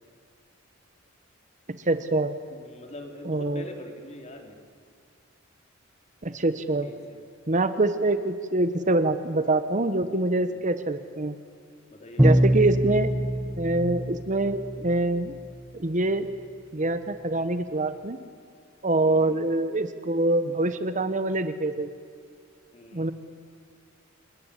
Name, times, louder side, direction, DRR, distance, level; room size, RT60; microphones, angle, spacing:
voice 1, 1.8-2.3 3.2-3.6 6.2-6.9 7.5-11.3 12.2-13.1 13.6-15.3 15.7-16.3 16.7-18.2 18.8-21.9 22.9-23.1, right 2 dB, 35° right, 11 dB, 1.1 m, -25 dB
voice 2, 2.5-4.6 6.8-7.2 10.3-10.6 11.9-12.5 19.0-19.4 22.7-23.1, left 1 dB, 35° left, 3 dB, 3.6 m, -44 dB
Bowed string instrument, 12.2-15.0, right 1 dB, 10° right, 0.6 m, -23 dB
28.0 x 21.0 x 10.0 m, 2.2 s
head